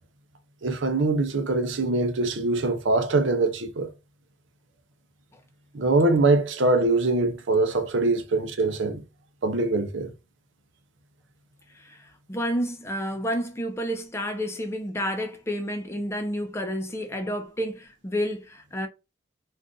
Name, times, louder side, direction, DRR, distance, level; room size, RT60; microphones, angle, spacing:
voice 1, 0.6-3.9 5.7-9.0 9.4-10.1, right 2 dB, 75° right, 0.6 m, -23 dB
voice 2, 11.7-18.9, equal, 15° left, 0.6 m, -30 dB
2.5 x 2.5 x 3.6 m
head